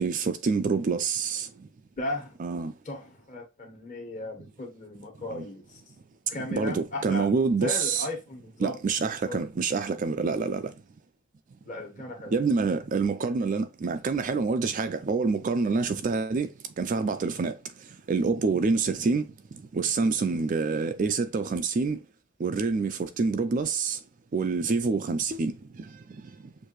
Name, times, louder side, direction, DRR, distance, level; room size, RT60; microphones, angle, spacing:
voice 1, 0.0-1.5 2.4-2.7 5.3-5.5 6.5-8.1 8.6-10.7 12.3-16.5 16.8-17.6 18.1-19.3 19.7-22.0 22.4-24.0 24.3-25.9, right 4 dB, 35° right, 0.3 m, -27 dB
voice 2, 2.0-2.4 2.8-5.6 6.3-7.3 7.6-8.7 9.3-9.4 11.6-12.3, left 1 dB, 35° left, 1.4 m, -36 dB
6.4 x 2.6 x 3.0 m
head